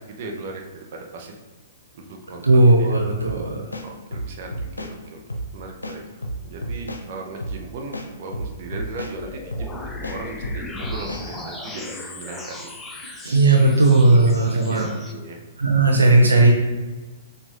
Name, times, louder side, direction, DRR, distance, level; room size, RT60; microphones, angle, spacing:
voice 1, 0.2-1.3 1.9-2.9 3.8-5.2 5.5-6.2 6.4-12.7 13.1-13.4 14.1-15.4, right 3 dB, 45° right, 1 dB, 0.9 m, -37 dB
voice 2, 2.4-3.7 13.2-14.9 15.6-16.5, right 2 dB, 75° right, 0 dB, 0.7 m, -16 dB
sound 1, 3.2-3.4 3.7-4.9 5.3-5.5 5.8-7.0 7.4-7.6 7.9-9.1 9.5-9.7 10.0-11.2, right 1 dB, 80° left, 0.7 m, -31 dB
sound 2, 9.1-15.1, left 2 dB, 10° left, 0.6 m, -37 dB
6.2 x 2.6 x 3.2 m, 1.3 s
figure-of-eight pair, 115°, 0 cm